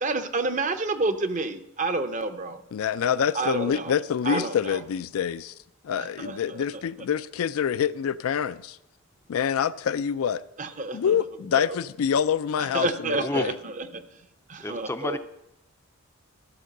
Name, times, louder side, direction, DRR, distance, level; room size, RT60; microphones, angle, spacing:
voice 1, 0.0-2.6 3.3-3.9 4.2-4.8 6.0-6.6 10.6-11.2 12.6-14.1 14.5-15.2, right 3 dB, 35° right, 10 dB, 0.6 m, -29 dB
voice 2, 2.7-5.5 5.8-8.8 9.3-10.4 10.9-13.5, left 8 dB, 80° left, 16 dB, 0.4 m, -26 dB
voice 3, 14.6-15.2, left 2 dB, 10° left, 10 dB, 0.4 m, -29 dB
13.5 x 4.6 x 6.5 m, 0.84 s
head